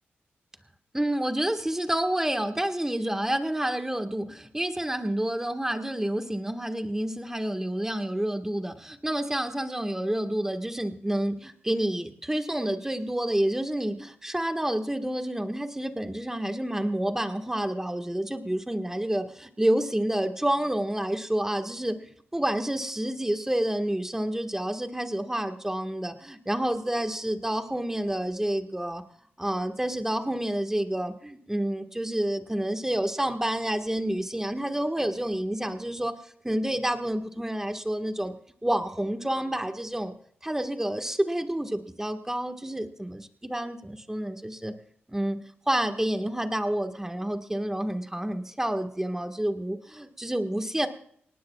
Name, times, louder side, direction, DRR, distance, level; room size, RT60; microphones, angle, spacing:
voice 1, 0.9-29.0 29.4-38.3 38.6-40.1 40.4-44.7 45.1-45.4 45.7-50.9, right 1 dB, 10° right, 6 dB, 1.6 m, -29 dB
22.5 x 18.5 x 2.4 m, 0.67 s
cardioid pair, 55°, 4 cm